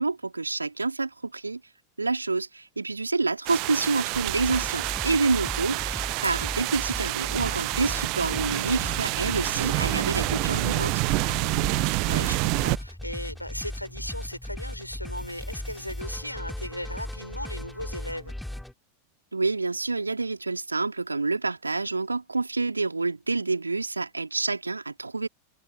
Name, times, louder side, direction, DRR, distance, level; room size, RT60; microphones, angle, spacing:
voice 1, 0.0-1.6 2.0-10.9 19.3-25.3, right 3 dB, 80° right, 3.4 m, -28 dB
sound 1, 3.5-12.8, right 30 dB, 45° right, 0.5 m, -28 dB
sound 2, 4.3-18.7, left 1 dB, 5° left, 2.9 m, -37 dB
voice 2, 11.4-18.3, left 1 dB, 90° left, 3.2 m, -37 dB
figure-of-eight pair, 90°, 0 cm